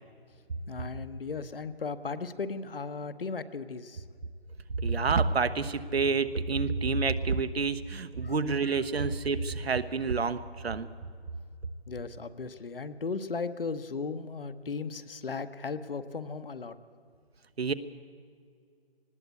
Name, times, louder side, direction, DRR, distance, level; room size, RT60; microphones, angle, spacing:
voice 1, 0.7-4.0 8.2-8.3 8.6-9.1 11.9-16.8, left 4 dB, 65° left, 12 dB, 1.1 m, -36 dB
voice 2, 4.8-10.9 17.6-17.7, right 4 dB, 85° right, 12 dB, 1.2 m, -28 dB
19.5 x 16.0 x 8.3 m, 2.2 s
hypercardioid pair, 175°, 31 cm